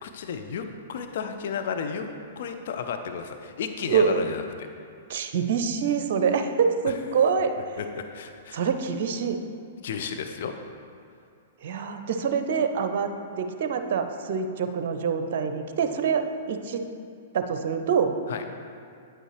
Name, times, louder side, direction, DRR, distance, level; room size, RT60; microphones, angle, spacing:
voice 1, 0.0-2.1 2.4-4.7 7.8-8.6 9.8-10.5 18.3-18.4, left 6 dB, 55° left, 6 dB, 0.6 m, -33 dB
voice 2, 3.9-4.2 5.1-7.5 8.5-9.4 11.6-16.8 17.3-18.1, right 6 dB, 55° right, 7 dB, 0.7 m, -25 dB
9.1 x 8.9 x 3.2 m, 2.4 s
figure-of-eight pair, 105°, 0 cm